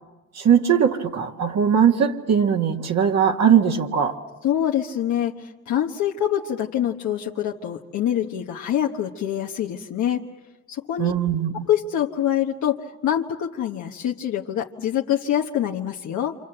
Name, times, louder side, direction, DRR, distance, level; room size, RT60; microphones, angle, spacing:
voice 1, 0.4-4.1 11.0-11.7, right 8 dB, 60° right, 3 dB, 2.0 m, -20 dB
voice 2, 4.4-10.2 10.7-11.1 11.7-16.4, left 10 dB, 75° left, 0 dB, 1.2 m, -25 dB
27.5 x 26.5 x 7.8 m, 1.1 s
cardioid pair, 90°, 30 cm